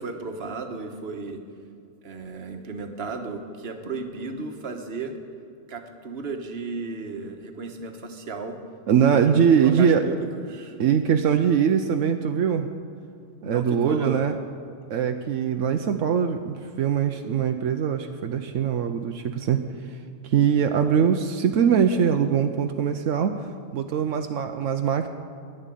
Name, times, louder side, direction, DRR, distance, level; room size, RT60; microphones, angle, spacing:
voice 1, 0.0-1.4 2.0-5.2 5.7-8.6 9.1-10.8 13.4-14.2, right 3 dB, 55° right, 5 dB, 1.4 m, -34 dB
voice 2, 8.9-10.0 10.8-12.7 13.4-14.4 14.9-20.0 20.2-25.1, right 7 dB, 85° right, 6 dB, 1.0 m, -22 dB
10.5 x 10.0 x 9.1 m, 2.5 s
omnidirectional pair, 1.3 m